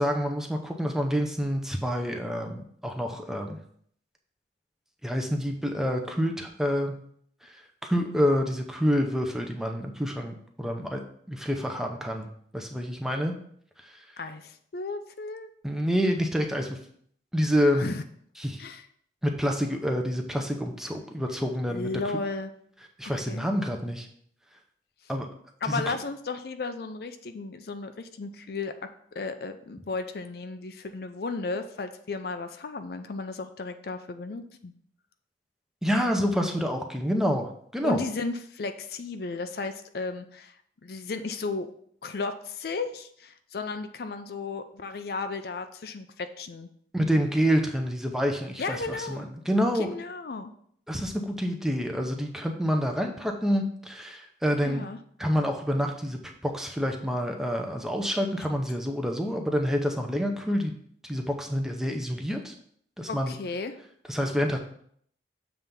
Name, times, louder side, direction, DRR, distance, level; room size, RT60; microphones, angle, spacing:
voice 1, 0.0-3.6 5.0-6.9 7.4-11.0 11.3-12.3 12.5-13.3 13.8-14.0 15.6-16.8 17.3-17.9 18.4-18.6 19.2-21.9 23.0-24.1 25.1-25.3 25.6-26.0 35.8-38.0 46.9-49.9 50.9-54.8 55.2-60.8 61.0-62.5 63.0-63.3 64.1-64.6, equal, 5° right, 3 dB, 0.6 m, -27 dB
voice 2, 14.2-15.5 17.8-18.0 18.6-18.9 21.7-22.5 23.3-23.5 25.6-34.7 37.8-40.5 40.8-41.7 42.0-46.7 48.6-49.3 49.7-50.5 54.6-55.0 63.1-63.8, left 3 dB, 55° left, 9 dB, 0.4 m, -34 dB
7.4 x 3.4 x 5.3 m, 0.64 s
head